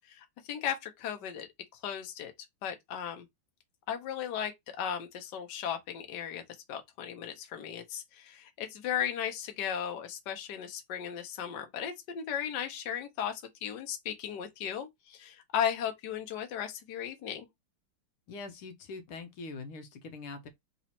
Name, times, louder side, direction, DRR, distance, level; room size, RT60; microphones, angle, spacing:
voice 1, 0.1-1.5 1.8-2.3 2.6-3.3 3.9-6.4 6.7-17.5, left 9 dB, 60° left, 1.4 m, -36 dB
voice 2, 18.3-20.5, left 3 dB, 80° left, 1.7 m, -43 dB
4.1 x 3.0 x 4.2 m
omnidirectional pair, 2.4 m